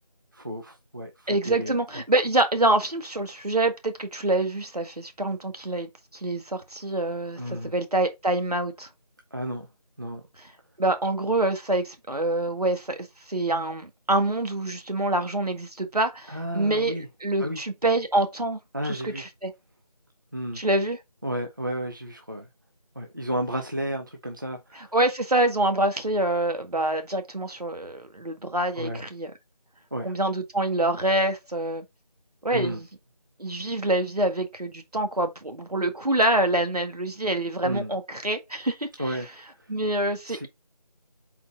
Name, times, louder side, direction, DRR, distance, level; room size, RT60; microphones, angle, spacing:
voice 1, 0.3-2.0 7.4-7.7 9.3-9.7 10.0-10.2 16.3-17.1 17.4-17.6 18.7-19.2 20.3-20.6 21.2-22.5 23.0-24.9 28.8-29.0 29.9-30.1 32.5-32.8 37.6-37.9 39.0-39.3 39.5-39.7 40.2-40.5, equal, 30° right, 0.6 m, -32 dB
voice 2, 1.3-8.9 10.8-19.5 20.5-21.0 24.9-29.3 30.0-31.8 32.4-32.9 33.4-39.2 39.7-40.5, right 1 dB, 70° right, 1.8 m, -26 dB
4.4 x 4.1 x 5.2 m
figure-of-eight pair, 170°, 21 cm